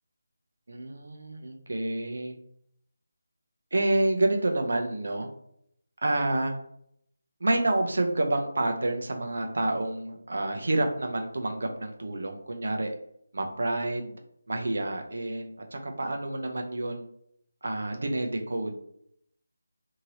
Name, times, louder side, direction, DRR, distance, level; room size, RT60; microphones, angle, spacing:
voice 1, 0.7-2.4 3.7-5.3 6.0-6.5 7.4-12.9 13.3-14.2 14.5-17.0 17.6-18.8, right 2 dB, 70° right, 4 dB, 0.6 m, -28 dB
2.9 x 2.8 x 2.7 m, 0.71 s
figure-of-eight pair, 170°, 0 cm